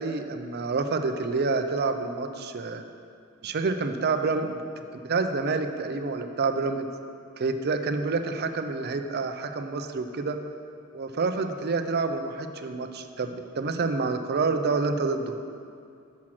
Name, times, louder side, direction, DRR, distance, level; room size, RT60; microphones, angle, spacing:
voice 1, 0.0-2.8 3.4-4.7 5.0-6.9 7.4-10.4 10.9-15.4, right 4 dB, 50° right, 7 dB, 0.5 m, -28 dB
7.3 x 6.2 x 5.9 m, 2.4 s
head